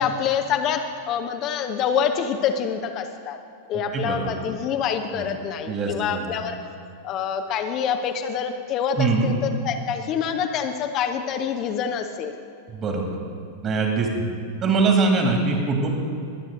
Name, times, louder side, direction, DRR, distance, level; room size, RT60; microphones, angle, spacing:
voice 1, 0.0-3.4 3.7-6.6 7.0-12.3, left 7 dB, 35° left, 6 dB, 0.7 m, -26 dB
voice 2, 3.7-4.3 5.1-5.3 5.7-6.2 9.0-9.3 12.7-13.1 13.6-14.2 14.6-15.9, right 4 dB, 30° right, 1 dB, 2.4 m, -22 dB
22.5 x 8.8 x 3.8 m, 2.5 s
figure-of-eight pair, 90°, 0 cm